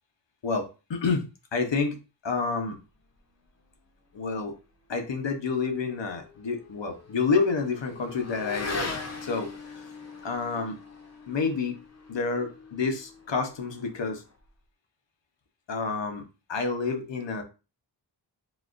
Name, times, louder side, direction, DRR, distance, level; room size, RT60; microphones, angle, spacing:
voice 1, 0.4-2.8 4.1-4.5 4.9-9.0 9.2-9.9 10.2-10.8 11.3-11.8 12.1-14.2 15.7-17.4, left 4 dB, 80° left, 5 dB, 0.8 m, -29 dB
Motorcycle / Accelerating revving vroom, 5.7-14.5, left 3 dB, 35° left, 0.6 m, -41 dB
4.0 x 2.3 x 2.5 m, 0.30 s
wide cardioid pair, 50°, 43 cm